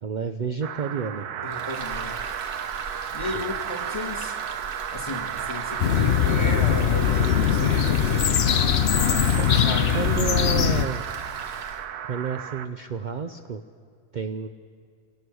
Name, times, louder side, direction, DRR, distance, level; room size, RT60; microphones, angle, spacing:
voice 1, 0.0-1.3 3.3-3.5 6.0-6.1 9.4-9.7 9.9-11.0 12.0-13.6 14.1-14.5, right 5 dB, 70° right, 7 dB, 0.4 m, -30 dB
sound 1, 0.6-12.7, right 9 dB, 85° right, 1.3 m, -33 dB
voice 2, 1.4-2.2 3.1-4.4 4.9-8.4 9.5-10.1, left 2 dB, 20° left, 0 dB, 1.6 m, -34 dB
Frying (food), 1.5-11.9, right 2 dB, 45° right, 1.5 m, -40 dB
sound 2, 5.8-10.9, left 9 dB, 60° left, 0.7 m, -21 dB
26.0 x 18.0 x 6.3 m, 2.3 s
omnidirectional pair, 1.6 m